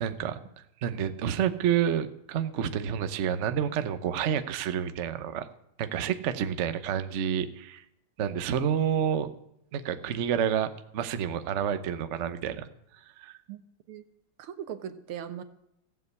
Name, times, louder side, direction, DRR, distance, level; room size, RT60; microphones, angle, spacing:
voice 1, 0.0-0.4 0.8-5.5 5.8-7.8 8.2-9.3 9.7-12.7 13.2-13.4, right 8 dB, 60° right, 10 dB, 0.7 m, -29 dB
voice 2, 14.4-15.4, right 9 dB, 85° right, 10 dB, 1.9 m, -39 dB
15.5 x 7.6 x 8.1 m, 0.80 s
omnidirectional pair, 2.3 m